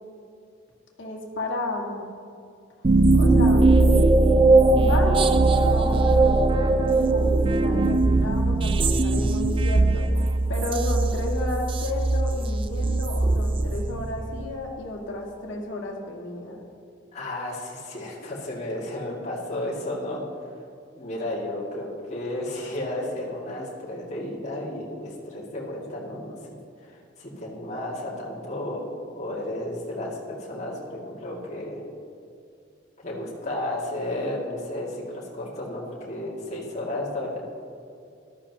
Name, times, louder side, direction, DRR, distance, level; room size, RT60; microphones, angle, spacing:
voice 1, 1.0-2.0 2.8-3.7 4.7-10.0 10.5-16.6, left 2 dB, 70° left, -1 dB, 2.0 m, -32 dB
sound 1, 2.8-14.4, right 2 dB, 25° right, 0.3 m, -20 dB
voice 2, 17.1-20.2 20.9-26.4 26.8-31.8 33.0-37.4, left 1 dB, 35° left, -5 dB, 2.4 m, -33 dB
14.0 x 12.5 x 3.0 m, 2.5 s
head